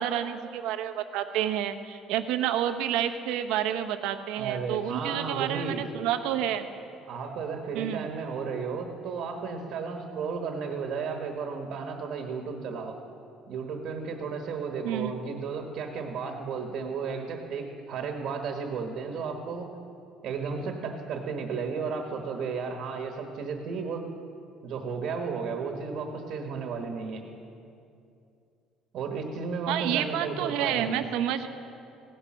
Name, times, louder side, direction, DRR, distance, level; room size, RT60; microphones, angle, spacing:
voice 1, 0.0-6.7 7.7-8.1 14.8-15.1 29.7-31.5, right 10 dB, 80° right, 8 dB, 0.8 m, -29 dB
voice 2, 4.3-5.8 7.1-13.0 13.5-19.7 20.2-24.1 24.6-27.2 28.9-31.1, right 5 dB, 50° right, 4 dB, 1.3 m, -33 dB
16.5 x 10.5 x 6.2 m, 2.6 s
cardioid pair, 165°, 0 cm